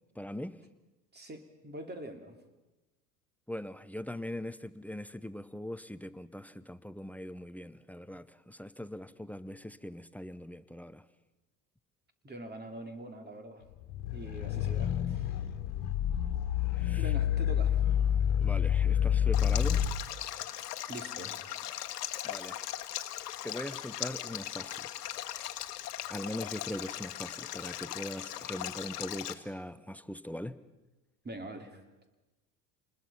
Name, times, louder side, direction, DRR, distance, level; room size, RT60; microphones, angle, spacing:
voice 1, 0.1-0.6 3.5-11.0 16.7-17.1 18.4-19.9 22.2-22.7 23.4-24.9 26.1-30.6, left 1 dB, 5° left, 16 dB, 0.7 m, -41 dB
voice 2, 1.1-2.4 12.2-13.6 14.1-15.3 17.0-17.8 20.9-21.4 31.2-31.8, right 1 dB, 20° right, 6 dB, 3.2 m, -44 dB
sound 1, 13.8-19.9, left 9 dB, 55° left, 1.8 m, -28 dB
Stream, 19.3-29.3, left 13 dB, 80° left, 1.2 m, -39 dB
28.0 x 20.5 x 5.7 m, 1.1 s
hypercardioid pair, 75°, 46 cm